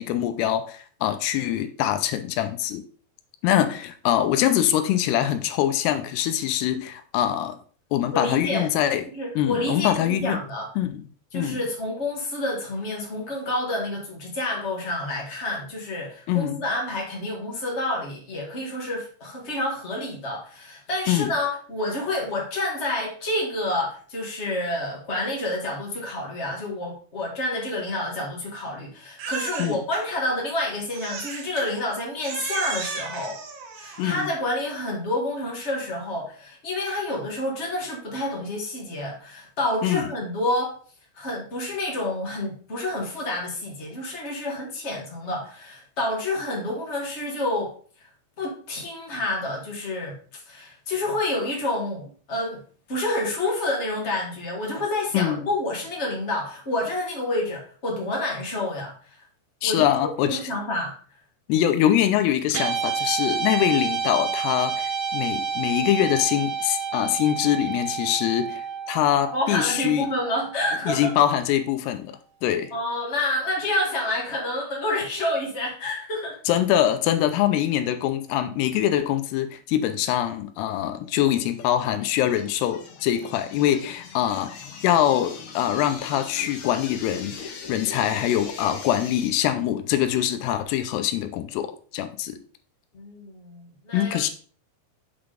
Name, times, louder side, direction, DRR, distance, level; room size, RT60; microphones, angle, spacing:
voice 1, 0.0-2.8 3.4-7.6 7.9-9.1 9.4-10.4 10.8-11.1 11.3-11.6 16.3-16.6 21.1-21.3 29.6-29.8 34.0-34.3 39.8-40.1 55.1-55.4 59.6-60.4 61.5-70.1 70.9-72.7 76.5-92.4 93.9-94.3, left 11 dB, 90° left, 8 dB, 2.7 m, -24 dB
voice 2, 8.1-8.7 9.1-10.7 11.3-33.4 33.8-40.7 41.1-47.7 48.0-48.1 48.4-50.2 50.5-52.6 52.9-59.2 59.6-60.9 69.3-71.1 72.7-76.4 92.9-94.2, left 1 dB, 55° left, -2 dB, 0.7 m, -28 dB
Crying sobbing, 29.2-30.0 30.9-31.7 32.2-34.3, right 5 dB, 60° right, 2.4 m, -34 dB
Guitar, 62.5-71.0, right 6 dB, 80° right, 2.8 m, -29 dB
sound 1, 81.4-89.3, left 6 dB, 70° left, 1.8 m, -40 dB
6.9 x 3.9 x 4.9 m, 0.43 s
omnidirectional pair, 4.6 m